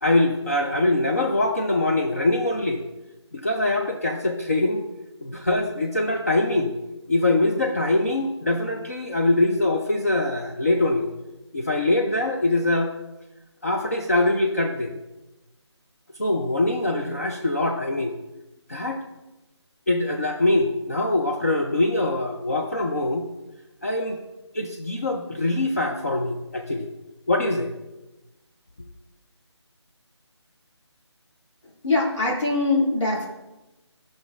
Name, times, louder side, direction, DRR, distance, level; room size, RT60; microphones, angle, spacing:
voice 1, 0.0-2.8 3.3-4.8 5.2-6.7 7.1-11.1 11.5-12.9 13.6-14.9 16.2-18.1 18.7-19.0 19.9-23.3 23.8-24.2 24.5-26.9 27.3-27.7, left 2 dB, 35° left, 2 dB, 0.4 m, -23 dB
voice 2, 31.8-33.2, left 2 dB, 80° left, -4 dB, 2.2 m, -22 dB
11.5 x 6.1 x 2.4 m, 1.0 s
figure-of-eight pair, 170°, 15 cm